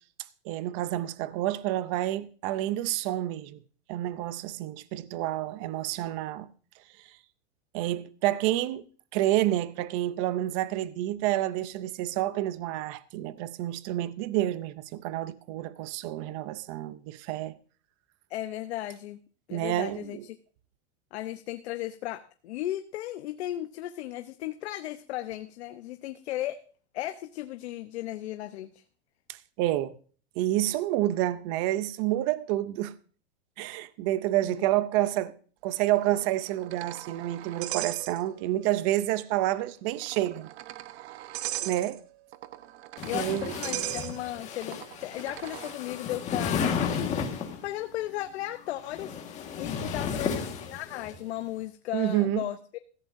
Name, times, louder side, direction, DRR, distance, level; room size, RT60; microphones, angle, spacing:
voice 1, 0.5-3.6 3.9-6.5 7.7-8.8 9.1-17.6 19.5-20.2 29.3-29.9 30.4-32.9 33.6-35.3 35.6-40.5 41.6-42.0 43.1-43.5 51.9-52.4, right 14 dB, 30° right, 0.5 m, -29 dB
voice 2, 18.3-19.2 19.5-20.4 21.1-26.6 26.9-28.8 34.4-34.7 43.0-47.2 47.6-49.2 49.6-52.8, left 14 dB, 70° left, 0.9 m, -36 dB
sound 1, 36.0-38.6 38.9-39.0 39.9-45.7, right 14 dB, 65° right, 0.9 m, -39 dB
sound 2, 43.0-47.6 48.6-51.1, left 6 dB, 20° left, 1.6 m, -33 dB
16.0 x 15.0 x 2.6 m
supercardioid pair, 170°, 34 cm